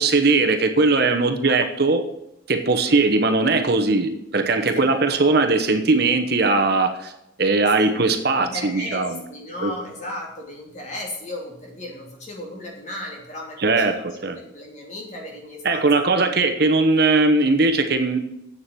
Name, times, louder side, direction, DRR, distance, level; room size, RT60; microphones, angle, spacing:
voice 1, 0.0-2.0 2.5-7.1 7.4-9.2 9.6-9.7 13.6-14.0 14.2-14.4 15.6-18.2, right 3 dB, 50° right, 7 dB, 1.0 m, -19 dB
voice 2, 4.7-5.2 7.6-8.1 8.4-16.3, left 1 dB, 35° left, -1 dB, 3.0 m, -36 dB
8.5 x 7.2 x 7.7 m, 0.84 s
head